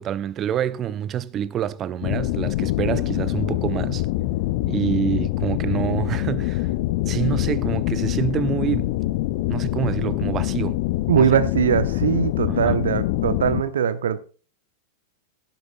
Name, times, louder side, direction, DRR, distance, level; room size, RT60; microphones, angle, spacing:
voice 1, 0.0-4.1 4.7-6.7 7.1-9.0 9.5-10.8 11.1-11.3 12.5-12.8, right 10 dB, 30° right, 0.6 m, -27 dB
sound 1, 2.0-13.6, left 16 dB, 50° left, 0.5 m, -24 dB
voice 2, 11.1-14.2, right 8 dB, 65° right, 1.0 m, -21 dB
17.0 x 10.5 x 2.4 m
figure-of-eight pair, 90°, 0 cm